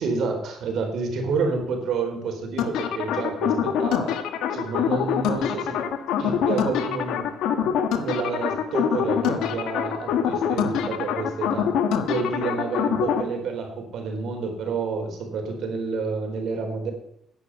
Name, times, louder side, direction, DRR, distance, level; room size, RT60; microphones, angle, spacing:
voice 1, 0.0-4.2 4.5-5.8 6.2-7.3 8.0-11.7 12.1-16.9, right 4 dB, 70° right, 3 dB, 4.1 m, -29 dB
sound 1, 2.6-13.2, left 8 dB, 85° left, 1.4 m, -25 dB
10.5 x 9.2 x 8.2 m, 0.72 s
cardioid pair, 90°, 0 cm